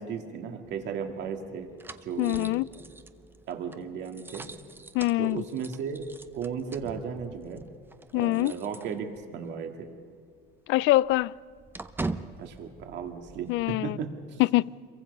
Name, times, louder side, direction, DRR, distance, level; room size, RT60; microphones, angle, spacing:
voice 1, 0.0-1.7 2.0-2.9 3.5-4.5 5.2-6.1 6.3-7.7 8.1-9.9 12.4-14.4, right 6 dB, 60° right, 2.2 m, -35 dB
sound 1, 0.6-9.5 9.8-9.9 10.3-13.7, right 3 dB, 10° right, 0.6 m, -43 dB
voice 2, 2.2-2.7 4.9-5.4 8.1-8.5 10.7-11.3 13.5-14.0 14.4-14.7, left 18 dB, 65° left, 0.5 m, -24 dB
27.5 x 23.0 x 5.5 m
cardioid pair, 155°, 21 cm